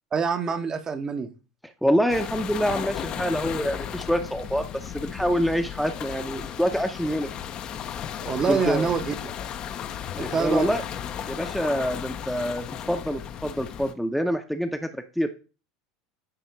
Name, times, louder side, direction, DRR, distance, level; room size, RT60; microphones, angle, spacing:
voice 1, 0.1-1.3 8.2-9.3 10.2-10.7, right 5 dB, 30° right, 8 dB, 1.0 m, -26 dB
voice 2, 1.8-7.3 8.5-8.9 10.1-10.8 11.3-15.3, equal, ahead, 6 dB, 0.8 m, -26 dB
sound 1, 2.1-13.9, left 9 dB, 45° left, 0.7 m, -35 dB
9.8 x 3.7 x 4.6 m, 0.33 s
hypercardioid pair, 80°, 2 cm